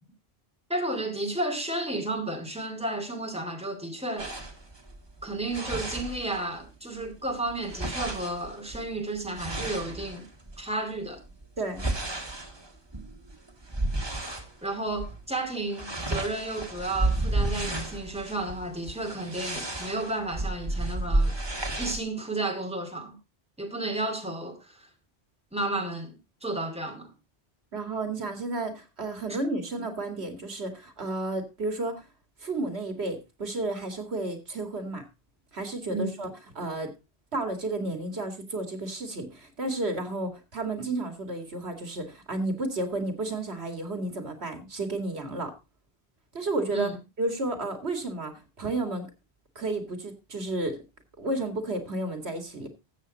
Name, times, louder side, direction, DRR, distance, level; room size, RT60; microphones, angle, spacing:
voice 1, 0.7-4.4 5.2-10.2 10.6-11.2 14.6-21.3 21.8-23.2 23.6-24.9 25.5-27.1 35.9-36.2 46.7-47.0, right 2 dB, 5° right, 2.5 m, -32 dB
sound 1, 4.2-6.7 7.0-10.6 11.2-14.5 14.9-15.2 15.5-22.0, right 2 dB, 25° right, 1.8 m, -32 dB
voice 2, 27.7-32.0 32.4-35.0 35.5-36.9 37.3-45.5 46.3-46.9 47.2-49.1 49.6-50.8 51.2-52.7, right 2 dB, 80° right, 2.5 m, -32 dB
13.5 x 8.1 x 4.1 m
omnidirectional pair, 1.1 m